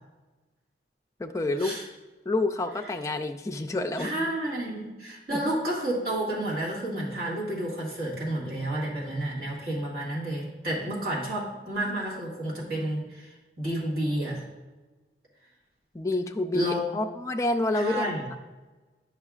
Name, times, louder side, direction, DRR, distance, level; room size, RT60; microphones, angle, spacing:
voice 1, 1.2-1.8 2.3-4.3 5.3-5.4 15.9-18.1, left 2 dB, 20° left, 3 dB, 0.4 m, -28 dB
voice 2, 4.0-14.4 16.5-16.9 17.7-18.3, right 1 dB, 60° right, -6 dB, 1.9 m, -31 dB
9.8 x 5.6 x 2.4 m, 1.2 s
head